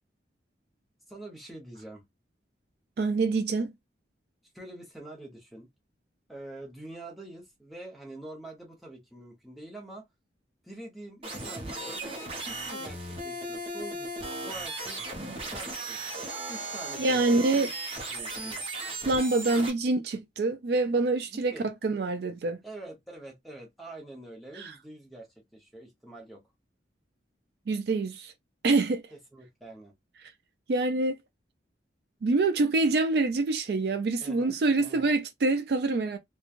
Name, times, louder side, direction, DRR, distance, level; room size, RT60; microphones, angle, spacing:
voice 1, 1.1-2.0 4.5-5.7 6.3-10.1 10.6-12.0 12.4-15.0 15.4-17.7 18.1-18.6 19.5-19.7 21.3-21.7 22.6-26.4 29.1-29.9 34.2-35.1, right 1 dB, ahead, 0.8 m, -45 dB
voice 2, 3.0-3.7 17.0-17.7 19.1-22.6 24.5-24.7 27.7-28.3 28.6-29.0 30.7-31.2 32.2-36.2, right 3 dB, 60° right, 0.3 m, -26 dB
sound 1, 11.2-19.7, right 2 dB, 30° right, 0.7 m, -36 dB
3.0 x 2.2 x 2.4 m
head